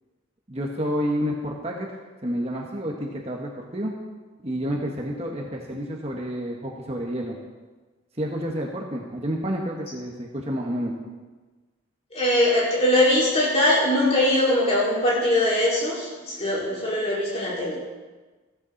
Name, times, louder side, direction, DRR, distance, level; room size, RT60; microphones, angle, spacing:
voice 1, 0.5-1.9 2.2-3.9 4.4-7.4 8.2-10.9, equal, 30° right, -1 dB, 1.5 m, -29 dB
voice 2, 12.1-17.8, left 1 dB, 30° left, -6 dB, 4.9 m, -21 dB
15.5 x 15.0 x 4.1 m, 1.3 s
head